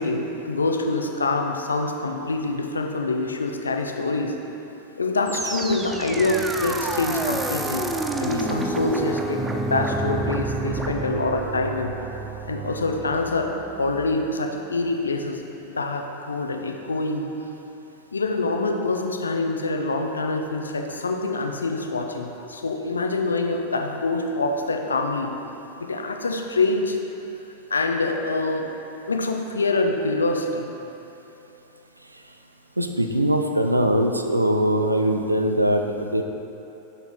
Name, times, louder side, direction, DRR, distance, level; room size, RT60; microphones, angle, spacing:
voice 1, 0.0-4.4 5.0-7.9 8.2-11.9 12.5-13.5 13.8-15.5 15.8-17.3 18.1-25.3 25.8-27.0 27.7-28.7 29.1-30.7, left 3 dB, 75° left, 3 dB, 0.4 m, -25 dB
sound 1, 5.3-14.4, right 2 dB, 10° right, 0.3 m, -29 dB
voice 2, 32.8-36.2, right 1 dB, 85° right, 5 dB, 0.3 m, -21 dB
6.7 x 4.2 x 3.5 m, 3.0 s
figure-of-eight pair, 90°, 0 cm